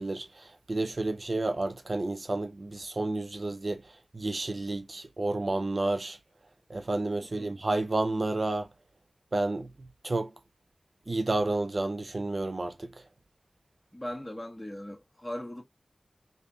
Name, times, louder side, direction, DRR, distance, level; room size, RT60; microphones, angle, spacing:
voice 1, 0.0-6.2 6.7-8.7 9.3-9.7 10.0-10.3 11.1-12.9, right 2 dB, 60° right, 0.5 m, -30 dB
voice 2, 7.2-7.5 13.9-15.7, left 1 dB, 10° left, 1.4 m, -39 dB
4.0 x 3.4 x 2.5 m
wide cardioid pair, 55°, 0 cm